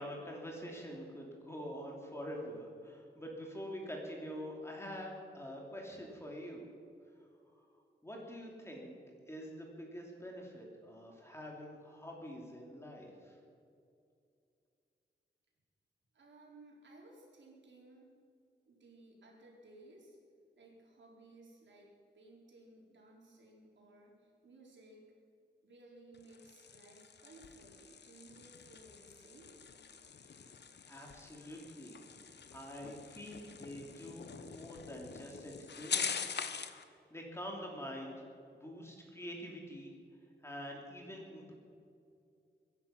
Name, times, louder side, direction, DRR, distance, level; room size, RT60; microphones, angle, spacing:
voice 1, 0.0-6.6 7.6-7.7 8.0-13.4 30.4-30.5 30.9-32.0 32.5-38.2 38.5-39.9 40.4-41.5, equal, 15° left, -1 dB, 2.7 m, -46 dB
voice 2, 16.1-18.1 18.6-20.2 20.6-25.1 25.6-29.5, right 2 dB, 75° right, -2 dB, 4.3 m, -58 dB
sound 1, 26.1-36.8, left 6 dB, 65° left, 0.9 m, -44 dB
23.0 x 10.5 x 5.8 m, 2.4 s
wide cardioid pair, 165°, 19 cm